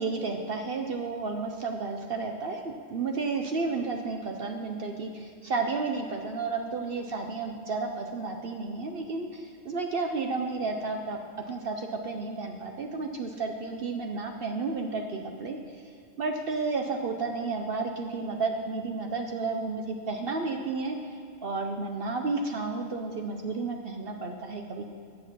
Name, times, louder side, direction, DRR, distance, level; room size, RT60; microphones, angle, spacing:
voice 1, 0.0-11.2 11.5-15.9 16.2-24.9, right 3 dB, 55° right, 4 dB, 0.8 m, -32 dB
10.5 x 7.4 x 6.0 m, 2.4 s
omnidirectional pair, 1.2 m